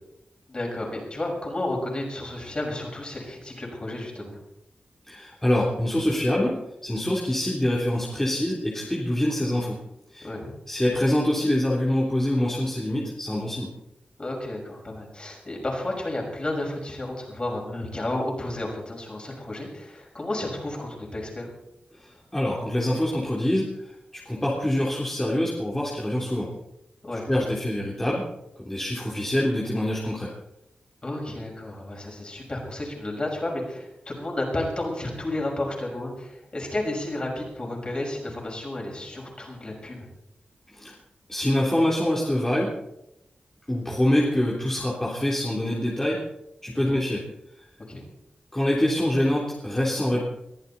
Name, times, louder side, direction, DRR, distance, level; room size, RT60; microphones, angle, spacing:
voice 1, 0.5-4.4 10.2-10.5 14.2-21.5 27.0-27.3 31.0-40.1 46.7-47.0 47.9-48.0, left 1 dB, 35° left, 0 dB, 6.3 m, -32 dB
voice 2, 5.1-9.8 10.1-10.3 10.7-13.7 22.3-23.7 24.1-26.5 27.3-28.2 28.7-30.3 40.7-40.9 41.3-42.7 43.7-46.2 46.6-47.2 48.5-50.2, left 1 dB, 10° left, -4 dB, 3.5 m, -25 dB
22.5 x 14.5 x 4.3 m, 0.84 s
wide cardioid pair, 100°, 3 cm